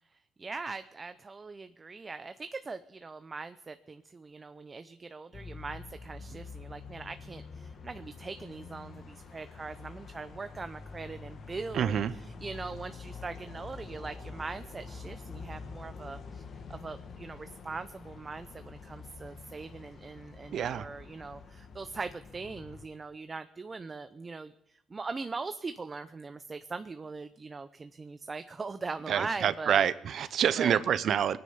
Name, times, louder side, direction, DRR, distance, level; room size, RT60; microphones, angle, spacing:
voice 1, 0.4-16.4 16.7-24.5 24.9-29.9 30.6-30.8, right 4 dB, 30° right, 10 dB, 0.6 m, -41 dB
sound 1, 5.3-22.9, left 4 dB, 55° left, 1.7 m, -46 dB
voice 2, 11.7-12.1 20.5-20.9 29.1-31.4, right 9 dB, 65° right, 14 dB, 0.7 m, -27 dB
21.0 x 9.7 x 5.6 m, 0.77 s
cardioid pair, 90°, 0 cm